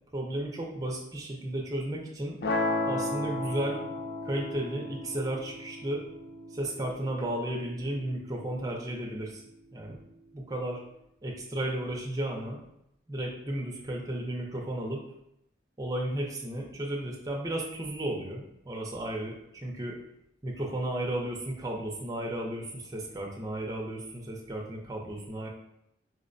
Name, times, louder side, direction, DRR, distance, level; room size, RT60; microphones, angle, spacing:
voice 1, 0.1-2.3 2.9-3.8 4.2-6.0 6.5-9.4 9.7-10.0 10.3-10.8 11.2-12.6 13.1-15.0 15.8-20.0 20.4-25.5, right 1 dB, 20° right, -1 dB, 0.5 m, -34 dB
sound 1, 2.4-8.5, left 2 dB, 55° left, 0.4 m, -34 dB
4.2 x 2.1 x 2.5 m, 0.79 s
head